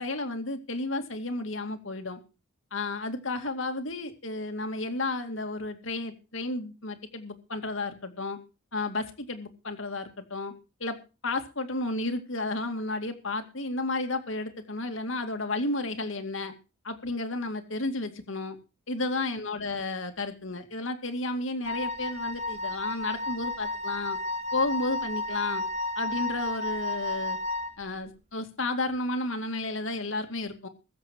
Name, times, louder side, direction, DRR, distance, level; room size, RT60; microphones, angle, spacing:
voice 1, 0.0-2.2 2.7-8.4 8.7-10.5 10.8-11.0 11.2-16.5 16.8-18.6 18.9-24.2 24.5-25.6 26.0-27.4 27.8-30.7, left 2 dB, 70° left, 6 dB, 2.4 m, -32 dB
Wind instrument woodwind instrument, 21.6-27.7, left 2 dB, 30° right, 2.0 m, -32 dB
22.0 x 7.7 x 4.5 m, 0.31 s
head